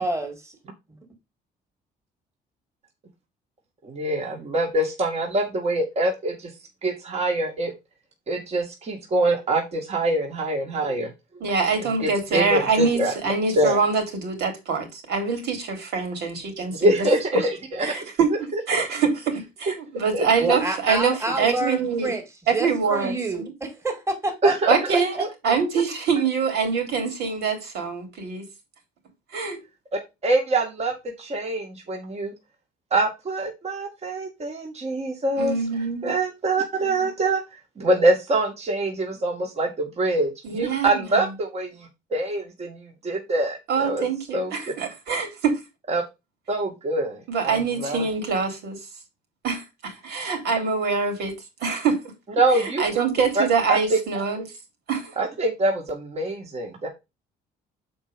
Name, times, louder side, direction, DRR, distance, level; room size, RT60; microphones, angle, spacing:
voice 1, 0.0-0.4 20.4-22.2 22.5-24.8, right 2 dB, 15° right, 2.4 m, -27 dB
voice 2, 3.8-6.5 6.8-7.7 8.3-11.1 12.0-13.1 13.5-13.8 16.8-17.9 18.7-18.8 20.1-20.6 24.4-24.7 25.2-25.3 30.2-32.3 32.9-35.5 36.0-37.4 37.8-44.0 44.3-44.5 45.9-46.0 46.5-48.1 52.4-52.8 53.4-53.5 53.7-54.0 55.2-56.9, right 2 dB, 40° right, 2.4 m, -24 dB
voice 3, 11.4-17.0 17.8-22.1 22.5-23.4 24.7-28.4 29.3-29.6 35.3-36.1 40.4-41.2 43.7-45.6 47.3-48.8 49.4-51.3 51.6-52.1 52.5-54.5 54.9-55.1, right 5 dB, 75° right, 3.7 m, -25 dB
7.2 x 4.7 x 5.2 m
cardioid pair, 115°, 17 cm